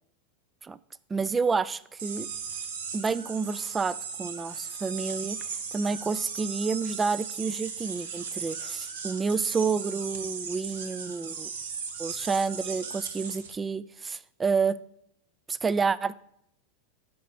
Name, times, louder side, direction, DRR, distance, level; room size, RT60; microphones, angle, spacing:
voice 1, 1.1-2.3 2.9-5.4 5.7-11.5 12.0-14.8 15.5-16.1, right 5 dB, 20° right, 19 dB, 0.3 m, -29 dB
sound 1, 2.0-13.5, right 6 dB, 65° right, 1.0 m, -37 dB
10.5 x 4.1 x 6.0 m, 0.73 s
figure-of-eight pair, 85°, 0 cm